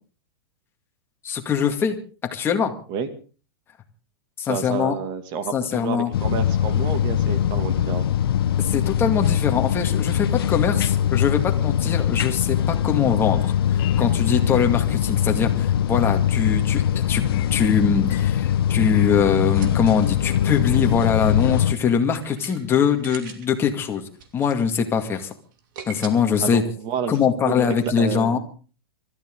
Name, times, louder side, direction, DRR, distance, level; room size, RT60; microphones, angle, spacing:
voice 1, 1.2-2.0 2.3-2.7 4.4-4.9 5.5-6.1 8.6-17.2 17.5-24.0 24.3-25.3 25.9-26.6 27.1-28.4, left 7 dB, 20° left, 4 dB, 2.1 m, -22 dB
voice 2, 4.5-8.1 26.4-28.4, right 6 dB, 35° right, 10 dB, 2.3 m, -29 dB
sound 1, 6.1-21.7, left 10 dB, 75° left, 0.9 m, -22 dB
sound 2, 13.8-14.2 14.5-14.9 17.3-17.6 18.1-18.4 18.9-19.3, left 14 dB, 40° left, 1.3 m, -36 dB
sound 3, 19.5-26.1, right 6 dB, 55° right, 2.9 m, -42 dB
25.5 x 13.5 x 3.8 m, 0.38 s
hypercardioid pair, 145°, 13 cm